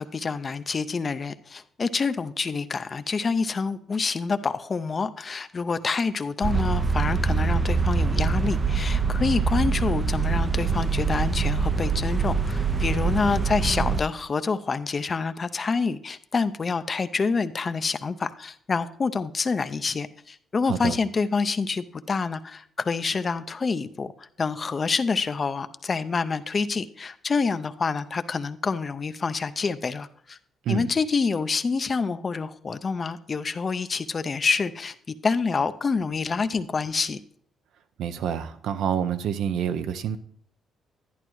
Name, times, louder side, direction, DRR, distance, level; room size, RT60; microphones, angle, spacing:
voice 1, 0.0-30.4 30.7-37.2, left 4 dB, 35° left, 0.4 m, -27 dB
sound 1, 6.4-14.0, right 5 dB, 30° right, 0.4 m, -24 dB
voice 2, 20.7-21.0 30.6-30.9 38.0-40.2, right 8 dB, 80° right, 0.5 m, -27 dB
11.0 x 10.5 x 3.1 m
cardioid pair, 90°, 0 cm